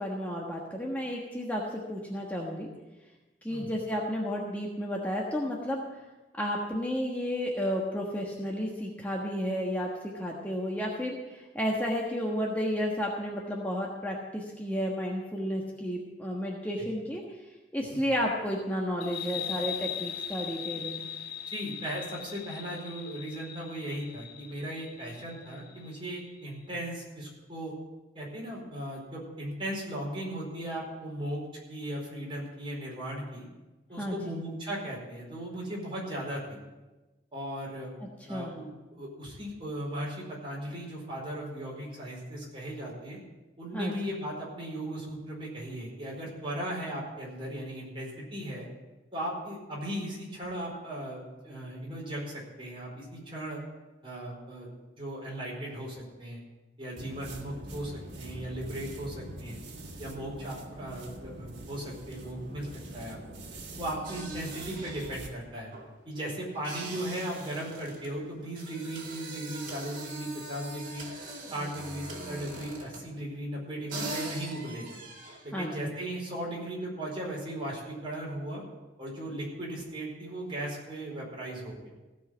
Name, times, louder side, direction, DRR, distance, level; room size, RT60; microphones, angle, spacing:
voice 1, 0.0-2.7 3.4-5.8 6.4-9.9 10.1-17.2 17.7-21.1 34.0-34.4 38.0-38.5 43.7-43.9 75.5-75.9, equal, 10° left, -2 dB, 1.3 m, -32 dB
sound 1, 19.0-26.2, left 9 dB, 60° left, 0.8 m, -39 dB
voice 2, 21.5-27.7 28.1-31.4 31.7-33.5 33.9-36.6 37.3-37.9 38.3-43.2 43.6-48.7 49.1-53.6 54.0-54.7 55.0-56.4 56.8-59.6 60.0-62.7 62.9-63.2 63.8-65.7 66.1-71.1 71.5-75.0 75.4-78.6 79.0-81.8, right 1 dB, 30° right, -4 dB, 4.6 m, -37 dB
sound 2, 57.0-65.3, right 1 dB, 70° right, 1.8 m, -44 dB
sound 3, 64.0-73.2 73.6-73.7 73.9-75.5, right 2 dB, 50° right, 2.6 m, -42 dB
16.0 x 5.6 x 8.0 m, 1.1 s
head